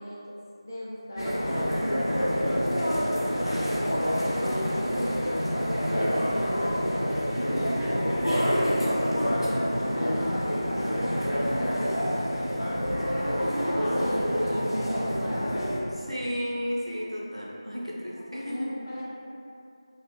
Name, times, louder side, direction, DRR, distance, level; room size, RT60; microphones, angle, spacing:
voice 1, 0.0-2.6 3.6-4.8 5.6-7.1 7.6-9.3 9.9-12.3 12.8-13.3 13.5-15.6 18.1-19.0, equal, 35° left, -8 dB, 0.3 m, -39 dB
sound 1, 1.2-15.8, equal, 65° left, 0.7 m, -27 dB
voice 2, 13.7-14.1 15.9-18.7, equal, 85° right, -6 dB, 0.7 m, -33 dB
2.4 x 2.3 x 3.0 m, 2.6 s
figure-of-eight pair, 170°, 3 cm